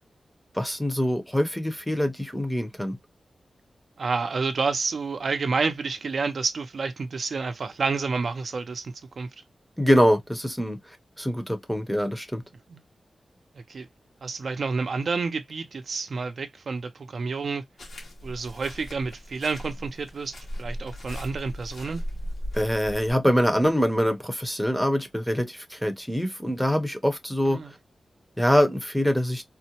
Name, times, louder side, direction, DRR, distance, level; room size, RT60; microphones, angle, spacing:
voice 1, 0.5-3.0 9.8-10.8 11.2-12.4 22.5-27.6 28.4-29.4, equal, ahead, 0.7 m, -24 dB
voice 2, 4.0-9.3 12.7-12.8 13.7-13.9 14.2-17.6 18.2-22.0 27.4-27.7, right 4 dB, 60° right, 0.5 m, -29 dB
sound 1, 17.8-23.1, equal, 85° left, 1.5 m, -37 dB
3.6 x 2.1 x 2.8 m
wide cardioid pair, 140°, 0 cm